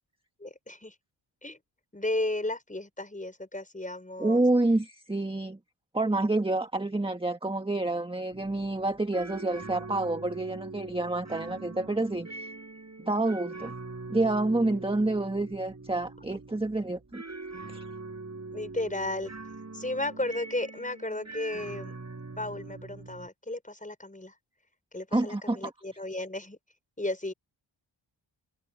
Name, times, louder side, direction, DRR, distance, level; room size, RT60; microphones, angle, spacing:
voice 1, 0.4-1.0 1.4-1.6 1.9-4.4 18.5-19.3 19.7-21.9 22.4-24.4 24.9-26.6 27.0-27.3, left 2 dB, 15° left, 5.3 m, -34 dB
voice 2, 4.2-5.6 5.9-12.5 13.0-13.7 14.1-17.2 17.7-17.8 25.1-25.7, right 2 dB, 10° right, 1.5 m, -28 dB
sound 1, 8.3-23.3, right 3 dB, 35° right, 7.8 m, -43 dB
cardioid pair, 70°, 49 cm